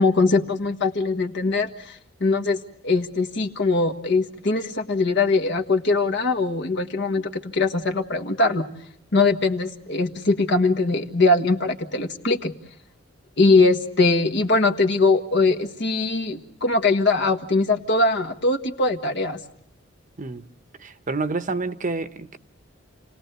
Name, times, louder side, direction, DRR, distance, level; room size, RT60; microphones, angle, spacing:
voice 1, 0.0-8.7 9.1-12.5 13.4-19.4, left 3 dB, 65° left, 1.6 m, -21 dB
voice 2, 20.8-22.4, right 3 dB, 40° right, 0.9 m, -28 dB
29.5 x 18.5 x 8.1 m
head